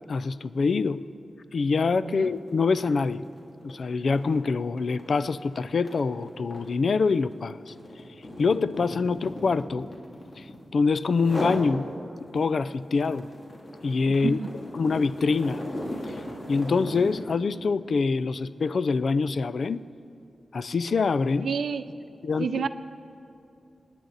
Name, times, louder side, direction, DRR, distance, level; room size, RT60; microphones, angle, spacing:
voice 1, 0.1-1.0 1.5-3.2 3.6-7.7 8.4-9.9 10.4-10.5 10.7-11.9 12.3-13.3 13.8-14.4 14.8-15.6 16.5-19.8 20.5-21.5 22.2-22.6, left 4 dB, 65° left, 15 dB, 0.4 m, -25 dB
sound 1, 1.7-1.9 2.2-10.7 11.1-11.7 12.2-17.3, left 1 dB, 50° left, 2.4 m, -37 dB
voice 2, 2.0-2.3 14.2-14.6 21.4-21.9 22.4-22.7, right 6 dB, 90° right, 12 dB, 0.5 m, -29 dB
26.0 x 10.0 x 4.0 m, 2.6 s
wide cardioid pair, 95°, 0 cm